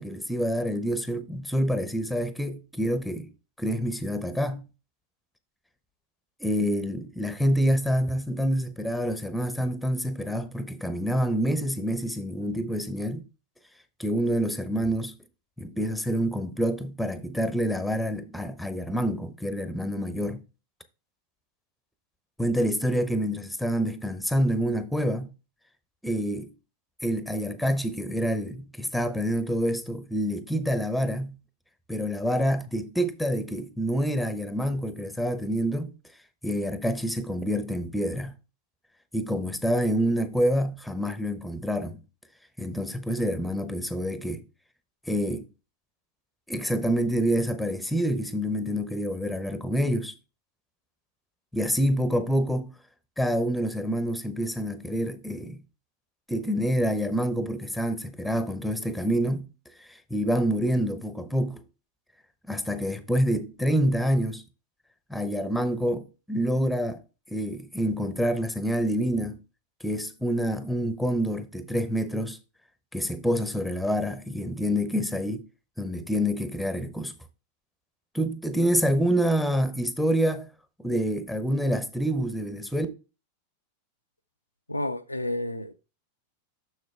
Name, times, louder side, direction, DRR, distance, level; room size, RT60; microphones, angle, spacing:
voice 1, 0.0-3.3 3.6-4.7 6.4-13.2 14.0-15.1 15.6-20.4 22.4-25.3 26.0-26.5 27.0-31.4 31.9-35.9 36.4-38.3 39.1-42.0 42.6-44.4 45.1-45.5 46.5-50.1 51.5-52.7 53.2-55.6 56.3-59.5 59.9-61.6 62.5-64.4 65.1-67.0 67.3-69.4 69.8-72.4 72.9-75.4 75.8-77.1 78.1-80.5 80.8-82.9, equal, ahead, 0.9 m, -27 dB
voice 2, 84.7-85.7, left 1 dB, 85° left, 0.4 m, -30 dB
6.4 x 6.4 x 3.3 m
figure-of-eight pair, 90°, 0 cm